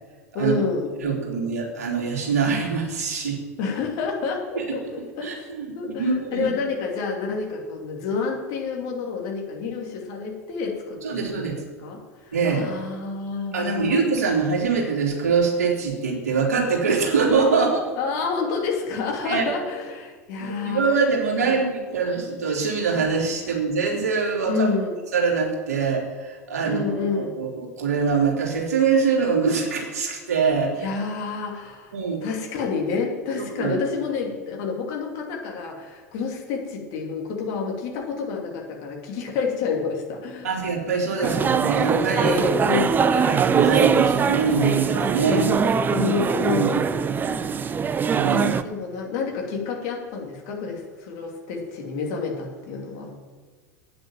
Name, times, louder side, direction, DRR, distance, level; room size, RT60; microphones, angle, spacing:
voice 1, 0.3-0.9 3.6-5.5 5.7-14.1 18.0-20.8 21.4-21.6 24.5-25.0 26.7-27.4 30.8-31.9 32.2-40.6 41.2-41.7 42.2-43.3 45.3-47.0 48.3-53.1, left 4 dB, 50° left, 0 dB, 2.9 m, -29 dB
voice 2, 1.0-3.4 4.6-4.7 5.2-6.5 11.0-11.5 12.3-12.6 13.5-17.8 19.3-19.4 20.4-24.7 25.1-27.0 27.4-30.9 31.9-32.2 33.6-33.8 40.4-42.4 43.1-45.4 46.4-46.9 47.2-47.7 48.1-48.5, right 5 dB, 70° right, -1 dB, 3.4 m, -24 dB
sound 1, 41.2-48.6, right 6 dB, 20° right, 0.6 m, -22 dB
9.3 x 7.7 x 9.2 m, 1.4 s
figure-of-eight pair, 85°, 9 cm